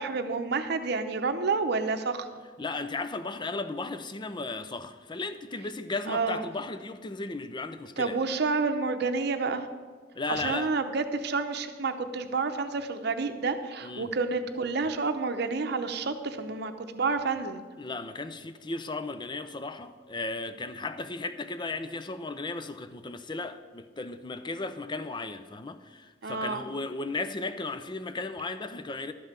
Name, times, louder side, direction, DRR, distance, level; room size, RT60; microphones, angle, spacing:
voice 1, 0.0-2.3 6.1-6.4 8.0-9.7 10.3-17.6 26.2-26.6, right 4 dB, 60° right, 0.8 m, -29 dB
voice 2, 2.6-8.2 10.1-10.7 13.8-14.1 17.8-29.1, left 3 dB, 25° left, 0.5 m, -35 dB
12.0 x 5.5 x 7.2 m
head